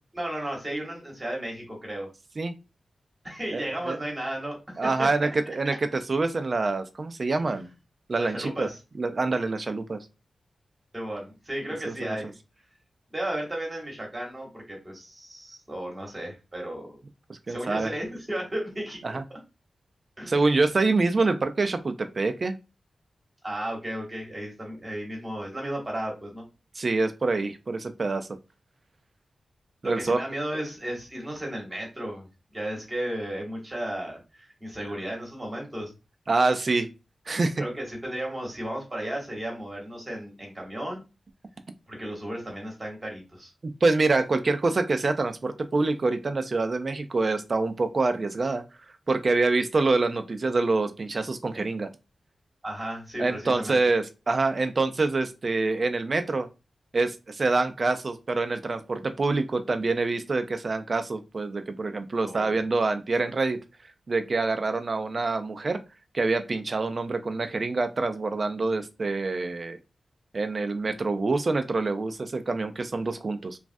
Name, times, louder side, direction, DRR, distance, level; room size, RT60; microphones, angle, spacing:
voice 1, 0.1-2.1 3.2-5.1 5.5-5.8 8.2-8.8 10.9-12.3 13.1-17.0 17.5-19.4 20.2-20.5 23.4-26.5 29.8-35.9 37.6-41.0 41.9-43.5 52.6-53.8 62.2-62.6, right 1 dB, 20° right, -1 dB, 1.1 m, -34 dB
voice 2, 3.5-4.0 4.8-7.7 8.1-8.7 9.0-10.0 11.9-12.2 17.3-17.9 19.0-19.2 20.3-22.5 26.8-28.3 29.8-30.2 36.3-36.9 37.3-37.6 43.8-48.6 49.1-51.9 53.2-56.5 56.9-63.6 64.1-65.8 66.1-69.8 70.3-73.6, right 3 dB, 40° right, 8 dB, 0.3 m, -26 dB
3.1 x 2.3 x 2.5 m, 0.28 s
wide cardioid pair, 150°, 0 cm